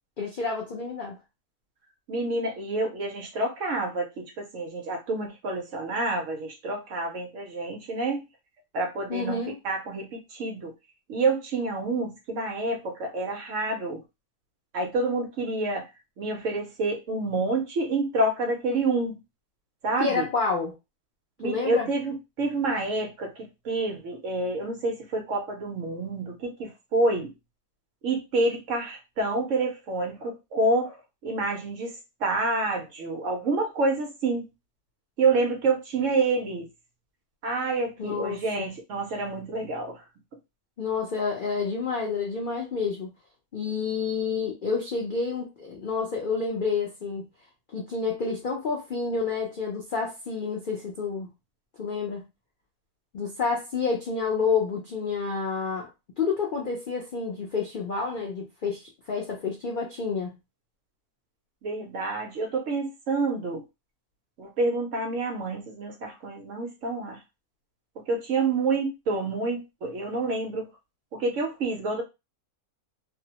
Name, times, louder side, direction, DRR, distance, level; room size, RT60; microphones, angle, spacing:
voice 1, 0.2-1.1 9.1-9.6 20.0-20.7 21.4-21.9 38.0-38.7 40.8-43.1 43.5-47.3 47.7-51.3 51.8-52.3 53.1-55.9 56.2-60.4, left 5 dB, 80° left, -1 dB, 0.4 m, -29 dB
voice 2, 2.1-8.2 8.7-10.7 11.1-14.0 14.7-15.9 16.2-19.2 19.8-20.3 21.4-27.3 28.0-31.9 32.2-34.5 35.2-36.7 37.4-40.0 61.6-63.6 64.4-67.2 68.1-70.7 71.1-72.0, right 3 dB, 65° right, 3 dB, 0.9 m, -28 dB
2.6 x 2.0 x 2.8 m, 0.24 s
omnidirectional pair, 1.6 m